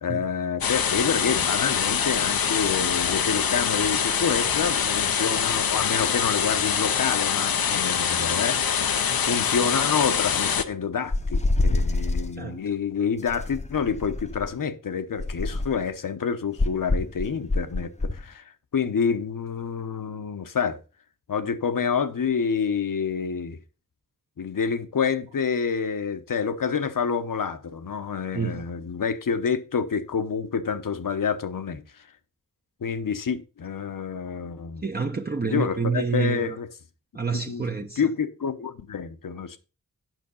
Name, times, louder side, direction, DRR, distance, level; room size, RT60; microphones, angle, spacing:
voice 1, 0.0-18.4 18.7-20.8 21.3-23.6 24.4-31.8 32.8-34.8 35.4-36.7 37.5-37.6 38.0-39.6, left 6 dB, 70° left, 1.0 m, -28 dB
sound 1, 0.6-10.6, left 7 dB, 90° left, 0.8 m, -24 dB
sound 2, 11.1-12.3 13.3-14.5 15.2-15.9 16.6-18.2, left 2 dB, 20° left, 0.8 m, -26 dB
voice 2, 34.8-36.6 37.1-38.0, right 5 dB, 30° right, 0.9 m, -28 dB
9.2 x 5.9 x 5.3 m
wide cardioid pair, 90°, 35 cm